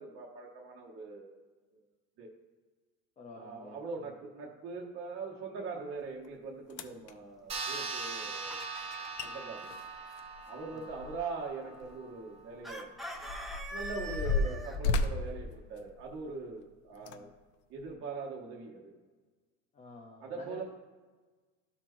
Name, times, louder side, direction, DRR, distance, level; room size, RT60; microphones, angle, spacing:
voice 1, 0.0-1.4 1.7-1.8 2.2-2.3 3.3-8.7 9.0-9.7 10.5-12.9 13.2-13.3 13.7-17.3 17.7-18.9 20.2-20.6, right 4 dB, 40° right, -3 dB, 1.1 m, -42 dB
voice 2, 3.2-4.2 10.6-10.9 16.9-17.3 19.7-20.6, left 3 dB, 20° left, 0 dB, 0.7 m, -51 dB
sound 1, 6.2-6.3 6.7-7.1 8.9-9.0 9.2-9.3 9.6-11.4 11.8-11.9 12.6-16.4 17.0-17.2 17.8-17.9, left 3 dB, 65° left, 0.6 m, -34 dB
sound 2, 7.5-12.4, right 4 dB, 20° right, 0.7 m, -41 dB
Chicken rooster, 8.0-9.2 12.6-14.8, right 1 dB, ahead, 0.3 m, -42 dB
12.5 x 4.3 x 3.1 m, 1.3 s
cardioid pair, 165°, 33 cm